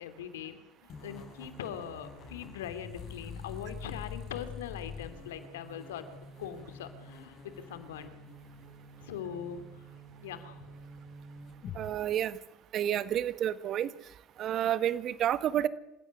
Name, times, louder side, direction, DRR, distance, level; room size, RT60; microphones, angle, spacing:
voice 1, 0.0-6.1 6.4-8.1 9.0-9.9 10.2-10.7, left 9 dB, 90° left, 10 dB, 3.0 m, -42 dB
sound 1, 0.9-11.8, left 4 dB, 55° left, 7.4 m, -46 dB
voice 2, 11.7-12.4 12.7-13.9 14.4-15.7, right 11 dB, 55° right, 14 dB, 1.7 m, -29 dB
27.0 x 16.5 x 9.7 m, 0.90 s
hypercardioid pair, 75°, 0 cm